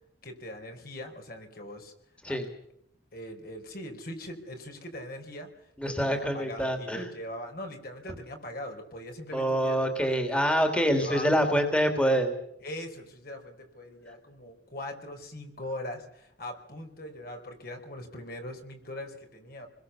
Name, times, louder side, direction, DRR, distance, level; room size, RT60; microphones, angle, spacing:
voice 1, 0.2-1.9 2.3-2.4 3.1-10.4 10.7-11.6 12.6-19.7, left 1 dB, 55° left, 4 dB, 4.6 m, -41 dB
voice 2, 5.8-7.1 9.3-12.3, equal, 5° left, 5 dB, 2.8 m, -26 dB
27.5 x 21.5 x 7.1 m, 0.77 s
head